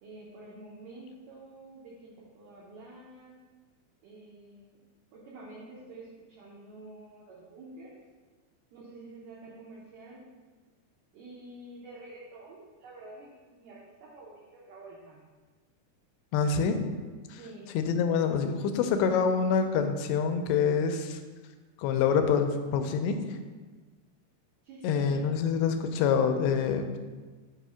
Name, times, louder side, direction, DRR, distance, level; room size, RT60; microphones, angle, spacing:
voice 1, 0.0-3.3 4.0-4.7 5.1-7.9 8.7-10.2 11.1-15.2 17.3-17.7 24.6-25.3, right 2 dB, 75° right, -5 dB, 1.9 m, -48 dB
voice 2, 16.3-16.8 17.3-17.4 17.7-21.2 21.8-23.4 24.8-27.0, left 6 dB, 85° left, 6 dB, 2.7 m, -26 dB
7.7 x 2.7 x 5.6 m, 1.4 s
omnidirectional pair, 5.0 m